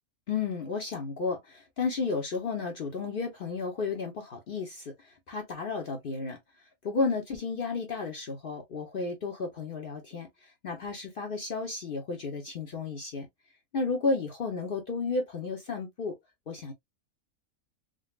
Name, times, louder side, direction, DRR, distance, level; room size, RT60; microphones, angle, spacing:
voice 1, 0.3-6.4 6.8-13.3 13.7-16.2 16.5-16.7, left 4 dB, 50° left, 0.7 m, -33 dB
3.8 x 2.2 x 2.2 m
omnidirectional pair, 1.5 m